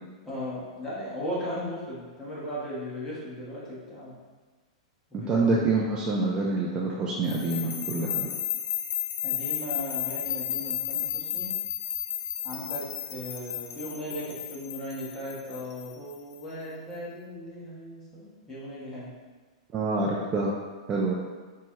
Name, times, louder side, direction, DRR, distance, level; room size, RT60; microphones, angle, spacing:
voice 1, 0.2-4.2 5.1-5.7 9.2-11.5 12.4-12.8 13.1-19.1, left 1 dB, 10° left, -8 dB, 1.2 m, -37 dB
voice 2, 5.1-8.3 19.7-20.6 20.9-21.1, right 3 dB, 20° right, -3 dB, 0.4 m, -26 dB
sound 1, 7.3-16.3, left 10 dB, 40° left, 0.5 m, -33 dB
4.1 x 2.3 x 4.5 m, 1.4 s
supercardioid pair, 160°, 4 cm